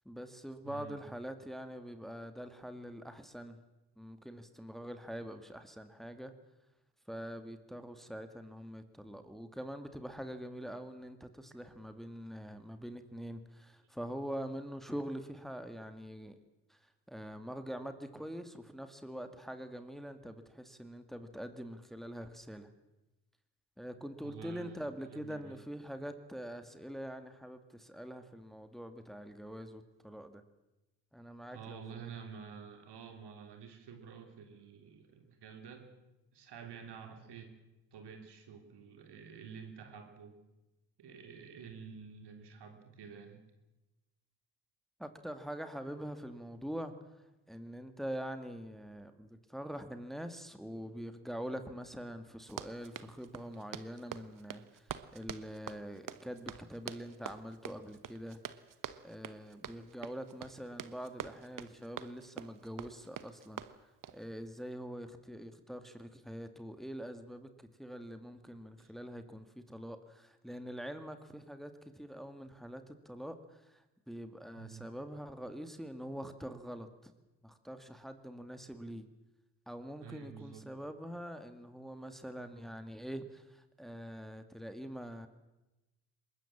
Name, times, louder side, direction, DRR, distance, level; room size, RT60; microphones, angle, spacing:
voice 1, 0.1-3.6 4.0-6.3 7.1-16.4 16.7-22.7 23.8-30.4 31.1-31.8 45.0-58.4 59.0-77.1 77.4-79.1 79.7-85.3, equal, ahead, 9 dB, 2.2 m, -44 dB
voice 2, 0.6-1.0 24.2-25.6 31.5-35.9 36.3-37.6 37.9-40.4 41.0-43.4 68.8-68.9 74.6-74.9 80.0-80.6, right 6 dB, 60° right, 6 dB, 3.5 m, -49 dB
Run, 52.4-64.2, right 9 dB, 45° right, 1.3 m, -46 dB
24.0 x 20.5 x 7.4 m, 1.0 s
hypercardioid pair, 45°, 45 cm